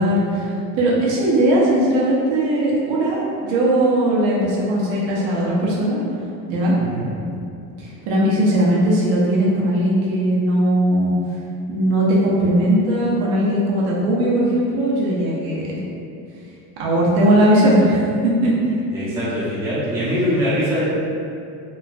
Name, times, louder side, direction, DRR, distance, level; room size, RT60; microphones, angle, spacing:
voice 1, 0.0-6.0 6.5-6.7 7.8-11.1 11.7-15.8 16.8-18.8, right 1 dB, 85° right, -5 dB, 0.7 m, -18 dB
voice 2, 18.9-20.9, equal, 5° right, -11 dB, 0.5 m, -22 dB
3.1 x 2.2 x 2.4 m, 2.6 s
cardioid pair, 135°, 38 cm